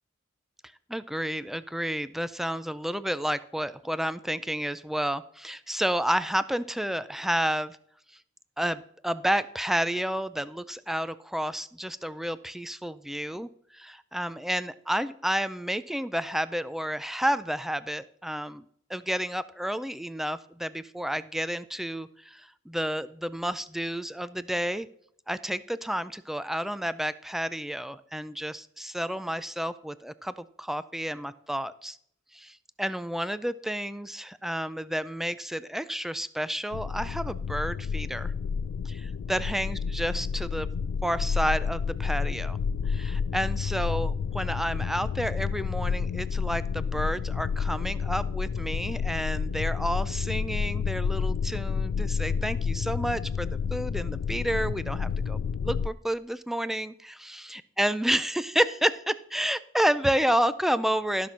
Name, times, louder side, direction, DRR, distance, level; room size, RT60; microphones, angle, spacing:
voice 1, 0.9-7.8 8.6-18.6 18.9-24.9 25.3-32.0 32.3-38.3 38.9-40.7 41.0-42.6 42.9-61.3, equal, ahead, 15 dB, 0.4 m, -30 dB
sound 1, 36.7-55.9, left 6 dB, 90° left, 0.3 m, -30 dB
14.0 x 6.0 x 5.6 m, 0.68 s
head